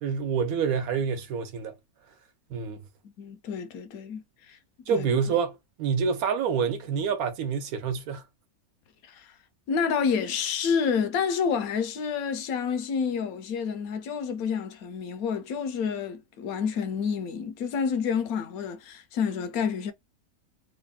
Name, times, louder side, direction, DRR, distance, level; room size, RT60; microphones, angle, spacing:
voice 1, 0.0-1.7 2.5-2.8 4.9-8.2, right 6 dB, 75° right, 1.1 m, -27 dB
voice 2, 3.2-4.2 4.9-5.1 9.1-9.3 9.7-19.9, left 6 dB, 75° left, 1.1 m, -29 dB
3.2 x 2.1 x 2.2 m
omnidirectional pair, 1.6 m